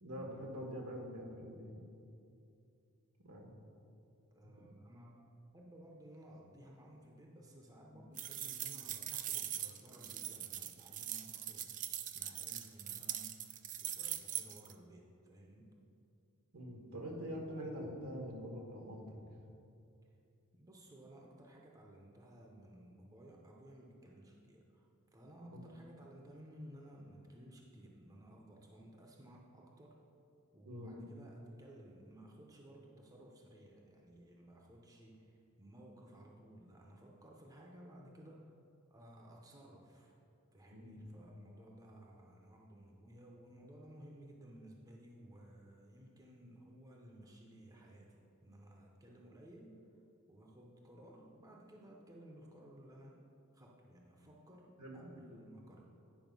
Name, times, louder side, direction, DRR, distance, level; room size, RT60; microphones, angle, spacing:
voice 1, 0.0-1.7 3.2-3.5 7.9-8.0 16.5-19.2 25.4-25.7 30.6-31.0 40.7-41.0 54.8-55.2, equal, 75° right, 0 dB, 1.5 m, -45 dB
voice 2, 4.3-13.4 13.8-15.7 20.5-30.0 30.5-38.5 38.9-40.1 40.5-49.8 50.3-53.2 53.5-55.9, right 1 dB, 15° right, -1 dB, 0.7 m, -57 dB
sound 1, 8.2-14.7, right 11 dB, 35° right, 0.4 m, -42 dB
9.2 x 5.3 x 5.3 m, 2.6 s
head